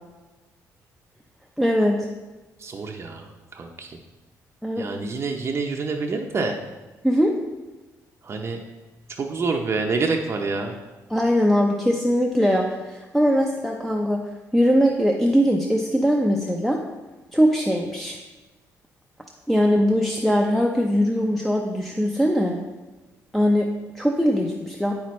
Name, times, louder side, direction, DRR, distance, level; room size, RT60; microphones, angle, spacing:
voice 1, 1.6-2.1 4.6-5.0 7.0-7.3 11.1-14.2 14.5-16.8 17.3-18.2 19.5-22.6 23.3-24.9, equal, ahead, 1 dB, 0.6 m, -21 dB
voice 2, 2.6-4.0 4.8-6.6 8.2-8.6 9.2-10.7, right 4 dB, 40° right, 2 dB, 0.6 m, -27 dB
8.5 x 5.8 x 3.1 m, 1.2 s
cardioid pair, 100°, 7 cm